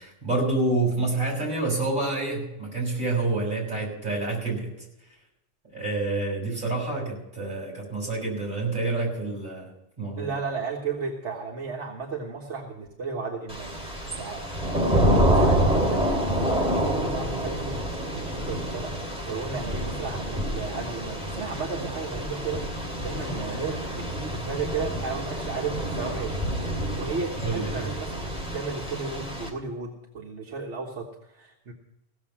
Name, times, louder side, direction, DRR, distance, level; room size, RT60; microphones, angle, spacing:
voice 1, 0.0-4.7 5.7-9.7 10.0-10.3 27.4-27.9, right 2 dB, 45° right, -2 dB, 6.5 m, -28 dB
voice 2, 10.2-14.4 14.8-17.8 18.1-22.6 23.0-26.4 27.0-31.7, right 4 dB, 80° right, -1 dB, 1.8 m, -34 dB
Thunder / Rain, 13.5-29.5, right 1 dB, 5° right, 2.9 m, -27 dB
16.5 x 7.2 x 7.3 m, 0.88 s
omnidirectional pair, 1.2 m